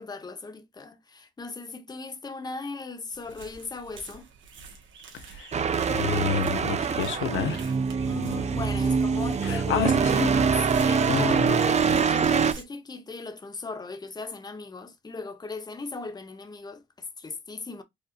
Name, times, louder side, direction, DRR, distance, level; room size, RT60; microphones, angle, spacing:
voice 1, 0.0-4.3 8.1-9.8 10.1-17.8, left 3 dB, 20° left, 0.9 m, -38 dB
sound 1, 3.1-12.6, right 5 dB, 70° right, 1.6 m, -47 dB
voice 2, 5.1-5.5 5.9-7.7 8.2-8.4 9.4-10.4 11.1-12.0, left 7 dB, 75° left, 1.0 m, -30 dB
sound 2, 5.5-12.5, right 6 dB, 35° right, 0.6 m, -24 dB
5.1 x 2.6 x 2.4 m
cardioid pair, 90°, 20 cm